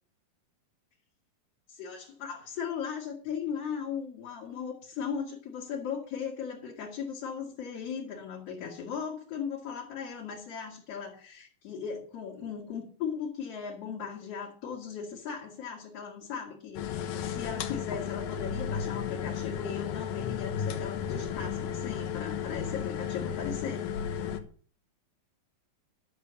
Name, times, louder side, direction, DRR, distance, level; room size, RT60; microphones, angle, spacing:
voice 1, 1.7-24.0, left 7 dB, 50° left, -2 dB, 2.8 m, -37 dB
sound 1, 16.8-24.4, left 8 dB, 75° left, 2.7 m, -34 dB
11.5 x 6.7 x 6.9 m, 0.44 s
omnidirectional pair, 4.0 m